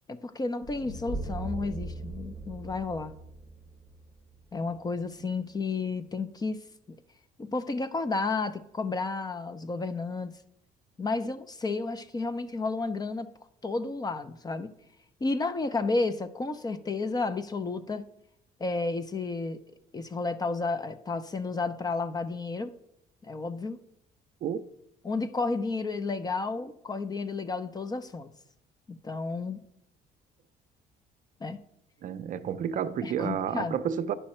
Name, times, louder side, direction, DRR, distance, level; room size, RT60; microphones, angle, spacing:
voice 1, 0.1-3.1 4.5-6.6 7.4-10.3 11.0-13.3 13.6-14.7 15.2-18.0 18.6-19.6 19.9-22.7 23.2-23.8 25.0-28.3 28.9-29.6 31.4-31.6 33.0-33.8, left 3 dB, 25° left, 0.6 m, -32 dB
sound 1, 0.6-4.8, right 2 dB, 80° left, 3.5 m, -39 dB
voice 2, 32.0-34.1, right 8 dB, 50° right, 0.5 m, -30 dB
9.5 x 5.5 x 4.3 m
cardioid pair, 110°, 17 cm